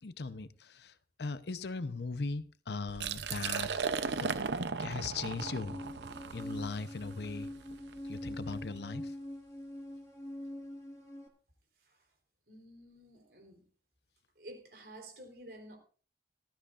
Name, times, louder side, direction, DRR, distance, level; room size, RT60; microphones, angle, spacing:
voice 1, 0.0-3.7 4.2-4.3 4.8-5.8 6.3-7.5 8.0-9.1, left 4 dB, 75° left, 0.8 m, -39 dB
Liquid, 2.9-8.6, right 5 dB, 85° right, 0.7 m, -37 dB
sound 1, 5.4-11.3, left 1 dB, 20° left, 2.0 m, -44 dB
voice 2, 12.5-13.7 14.4-15.8, right 1 dB, 60° right, 3.7 m, -51 dB
18.5 x 13.0 x 2.5 m
head